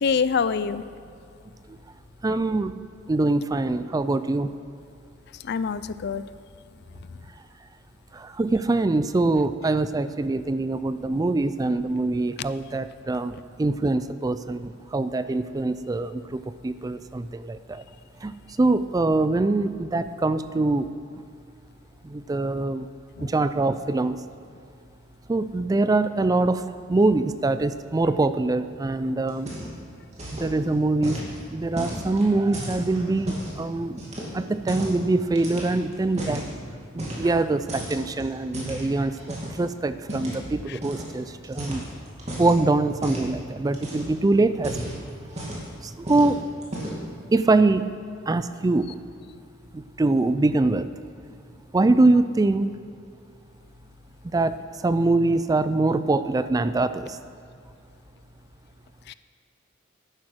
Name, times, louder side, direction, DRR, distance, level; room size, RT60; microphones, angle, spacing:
voice 1, 0.0-0.8 5.4-6.2 23.2-23.3 40.7-40.8 59.1-59.2, left 5 dB, 55° left, 14 dB, 0.4 m, -25 dB
voice 2, 2.2-4.5 8.1-17.8 18.2-20.9 22.0-22.9 23.2-24.2 25.3-26.6 26.9-29.5 30.4-31.2 31.5-34.0 34.3-36.4 36.9-41.9 42.4-44.8 45.8-46.4 47.3-47.9 48.3-48.9 49.7-50.9 51.7-52.8 54.2-57.2, right 2 dB, 20° right, 12 dB, 0.3 m, -24 dB
sound 1, 29.3-29.9 30.1-30.5 31.0-33.6 34.0-35.0 35.4-36.5 37.0-37.4 37.7-39.6 40.1-40.4 40.8-41.1 41.4-42.6 43.0-43.3 43.7-44.2 44.5-45.7 46.1-46.3 46.6-47.1, right 1 dB, 35° right, 2.6 m, -34 dB
11.5 x 9.5 x 6.2 m, 2.5 s
head